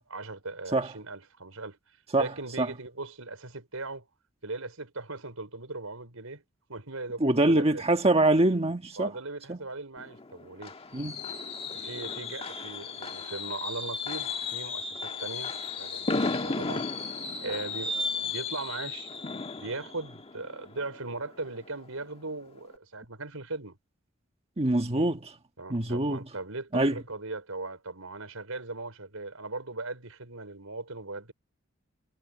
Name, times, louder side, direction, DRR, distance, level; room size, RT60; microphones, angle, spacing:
voice 1, 0.1-1.8 2.1-4.0 4.4-6.4 6.7-7.6 9.0-10.7 11.7-16.1 16.4-16.9 17.4-19.1 19.6-23.8 25.6-31.3, right 3 dB, 85° right, 5.1 m, -39 dB
voice 2, 7.2-9.1 9.5-9.6 10.9-11.1 24.6-25.3 25.7-26.2 26.7-27.0, right 2 dB, 30° right, 1.5 m, -24 dB
Fireworks, 10.0-21.7 22.0-22.3 22.6-22.7, left 4 dB, 30° left, 1.5 m, -35 dB
head